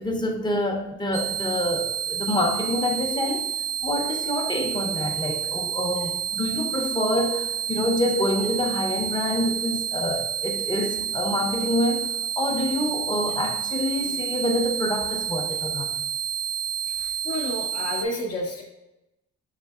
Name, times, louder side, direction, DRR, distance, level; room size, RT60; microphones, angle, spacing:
voice 1, 0.0-3.5 3.8-15.9, left 1 dB, 15° left, 2 dB, 0.7 m, -27 dB
sound 1, 1.1-18.0, right 9 dB, 25° right, 0.6 m, -29 dB
voice 2, 16.9-18.6, left 1 dB, 50° left, -3 dB, 0.8 m, -31 dB
6.5 x 2.7 x 2.3 m, 0.95 s
cardioid pair, 90°, 30 cm